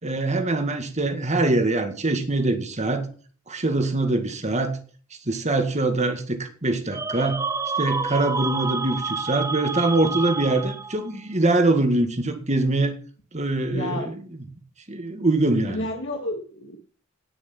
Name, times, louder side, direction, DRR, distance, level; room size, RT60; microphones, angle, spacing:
voice 1, 0.0-3.1 3.5-4.8 5.3-7.4 7.8-13.0 13.3-14.4 14.9-15.9, right 2 dB, 35° right, 7 dB, 1.9 m, -23 dB
sound 1, 6.9-11.1, right 4 dB, 15° right, 0.7 m, -29 dB
voice 2, 13.6-14.1 15.7-16.8, left 2 dB, 65° left, 2 dB, 1.9 m, -31 dB
18.0 x 6.3 x 6.0 m, 0.42 s
head